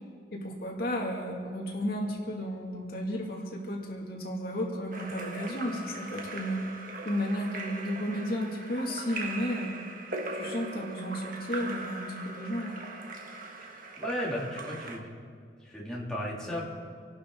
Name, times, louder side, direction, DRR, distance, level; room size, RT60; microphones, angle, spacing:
voice 1, 0.3-6.6 7.0-9.7 10.3-12.8, equal, 55° left, -1 dB, 2.4 m, -33 dB
Splash splatter / Drip / Trickle dribble, 4.9-15.0, right 2 dB, 50° right, 1.4 m, -40 dB
voice 2, 14.0-15.1 15.6-16.6, left 1 dB, 5° left, -6 dB, 2.8 m, -34 dB
26.5 x 11.5 x 3.9 m, 2.1 s
head